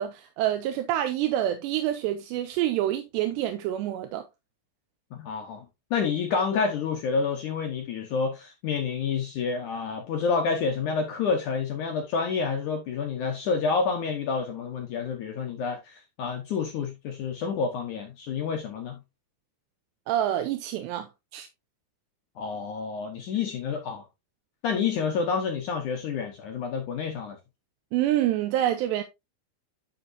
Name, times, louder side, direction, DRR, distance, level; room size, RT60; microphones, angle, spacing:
voice 1, 0.0-4.2 20.1-21.1 21.3-21.5 27.9-29.0, right 12 dB, 80° right, 2.8 m, -27 dB
voice 2, 5.1-5.7 5.9-19.0 22.4-24.1 24.6-27.4, left 5 dB, 70° left, 1.9 m, -29 dB
11.0 x 6.4 x 2.7 m
omnidirectional pair, 5.2 m